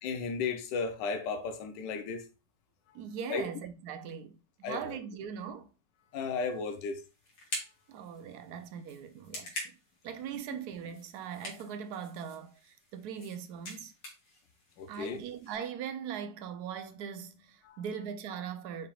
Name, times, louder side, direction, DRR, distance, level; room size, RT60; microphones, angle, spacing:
voice 1, 0.0-2.2 3.3-3.5 4.6-5.0 6.1-7.0 14.8-15.2 17.7-17.8, left 5 dB, 80° left, 1.4 m, -34 dB
voice 2, 2.9-4.3 4.6-5.7 7.9-9.8 10.0-13.9 14.9-18.9, right 8 dB, 70° right, 1.0 m, -40 dB
sound 1, 6.3-15.5, left 1 dB, 60° left, 2.1 m, -46 dB
5.7 x 3.5 x 2.3 m
omnidirectional pair, 2.0 m